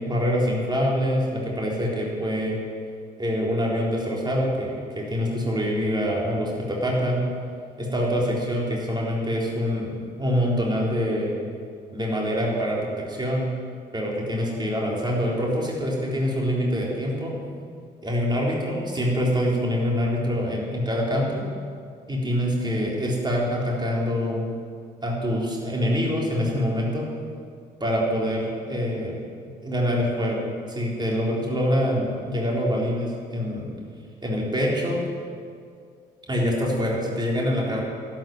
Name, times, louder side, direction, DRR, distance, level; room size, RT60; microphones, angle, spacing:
voice 1, 0.1-2.6 3.2-7.2 7.8-11.3 11.9-13.5 13.9-17.3 18.0-21.4 22.1-24.4 25.0-27.1 27.8-29.1 29.6-30.4 30.7-33.7 34.2-35.0 36.3-37.8, equal, 20° right, -3 dB, 3.9 m, -25 dB
11.5 x 9.0 x 9.1 m, 2.2 s
figure-of-eight pair, 45°, 21 cm